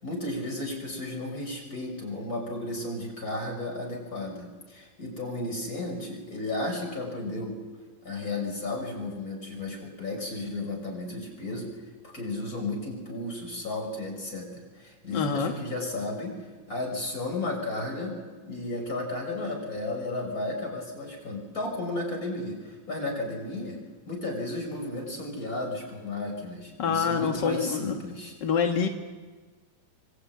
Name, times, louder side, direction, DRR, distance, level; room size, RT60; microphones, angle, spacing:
voice 1, 0.0-7.6 8.0-11.7 12.0-23.8 24.1-28.3, left 2 dB, 20° left, 1 dB, 6.8 m, -33 dB
voice 2, 15.1-15.5 26.8-28.0 28.4-28.9, left 6 dB, 60° left, 4 dB, 1.1 m, -26 dB
25.5 x 25.0 x 9.4 m, 1.4 s
omnidirectional pair, 4.4 m